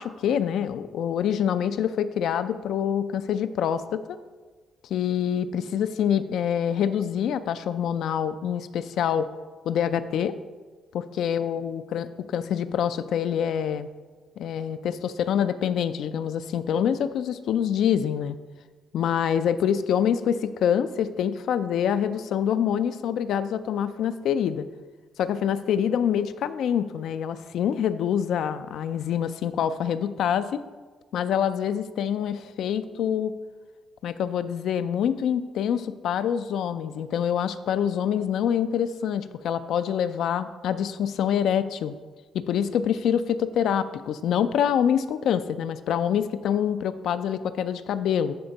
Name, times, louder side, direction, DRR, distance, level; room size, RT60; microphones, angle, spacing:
voice 1, 0.0-4.0 4.9-9.3 9.7-10.3 10.9-13.9 14.4-18.4 18.9-24.7 25.2-30.6 31.1-33.3 34.0-41.9 42.3-48.3, left 8 dB, 75° left, 12 dB, 0.3 m, -26 dB
10.0 x 3.5 x 4.0 m, 1.4 s
cardioid pair, 90°, 0 cm